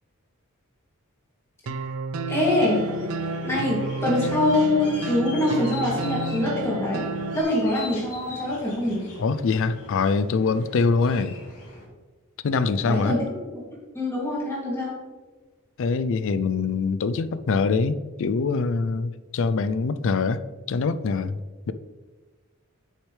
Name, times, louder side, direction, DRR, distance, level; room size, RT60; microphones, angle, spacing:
sound 1, 1.7-7.4, right 2 dB, 65° right, 0.4 m, -31 dB
voice 1, 2.3-2.9 3.4-9.0 12.8-13.2 13.9-15.0, left 1 dB, 10° left, 2.6 m, -24 dB
sound 2, 2.4-11.9, left 2 dB, 85° left, 2.5 m, -43 dB
voice 2, 9.2-11.3 12.4-13.1 15.8-20.4 20.7-21.4 21.7-21.8, left 4 dB, 60° left, 0.4 m, -24 dB
8.4 x 6.5 x 3.3 m
head